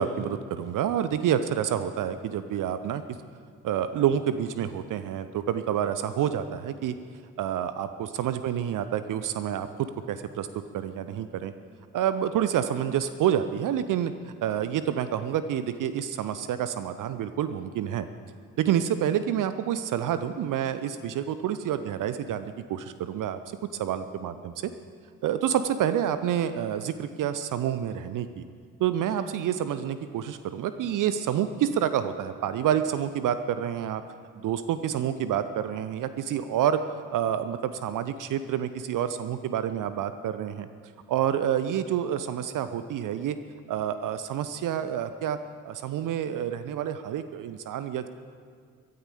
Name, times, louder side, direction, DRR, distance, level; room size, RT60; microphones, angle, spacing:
voice 1, 0.0-3.0 3.6-6.9 7.4-7.9 8.2-10.5 10.7-11.5 11.9-18.1 18.6-23.4 23.8-24.7 25.2-28.4 28.8-34.0 34.4-36.8 37.1-40.7 41.1-43.4 43.7-45.4 45.6-48.1, right 10 dB, 45° right, 12 dB, 0.7 m, -28 dB
22.5 x 9.5 x 5.0 m, 2.1 s
figure-of-eight pair, 40°, 44 cm